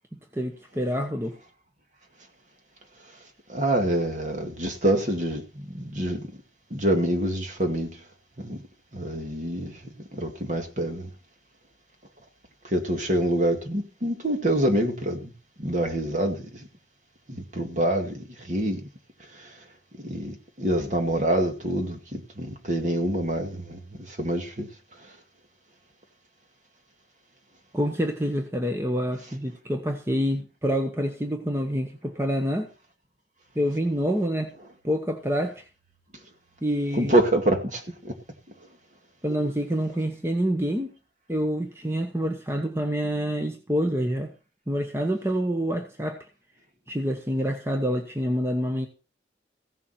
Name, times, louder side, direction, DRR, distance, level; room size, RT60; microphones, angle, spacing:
voice 1, 0.3-1.4 27.7-32.7 33.5-34.5 34.8-35.6 36.6-37.2 39.2-40.9 41.3-44.3 44.7-46.2 46.9-48.9, equal, 15° right, 1.1 m, -27 dB
voice 2, 3.5-6.3 6.7-8.0 8.4-8.6 8.9-9.8 10.1-11.1 12.6-15.3 15.6-16.7 17.3-18.8 19.3-19.6 20.0-24.7 25.0-25.1 36.9-38.1, right 1 dB, 45° right, 2.2 m, -26 dB
15.5 x 7.3 x 5.8 m
head